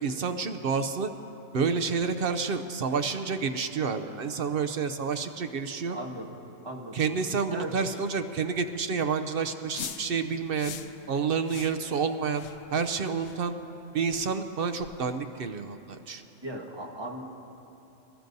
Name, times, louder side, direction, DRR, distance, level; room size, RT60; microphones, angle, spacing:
voice 1, 0.0-1.1 1.5-6.0 6.9-10.7 11.1-12.4 12.7-13.6 13.9-16.2, right 5 dB, 55° right, 8 dB, 0.7 m, -29 dB
voice 2, 5.9-6.3 6.6-7.0 7.5-7.7 16.4-17.2, right 1 dB, 20° right, 0 dB, 1.2 m, -37 dB
sound 1, 9.7-10.1 10.6-10.9 11.5-11.8 12.3-12.6 13.2-13.4 14.1-14.2 14.8-15.0, left 7 dB, 65° left, 0.8 m, -40 dB
25.5 x 14.0 x 2.7 m, 2.9 s
omnidirectional pair, 1.4 m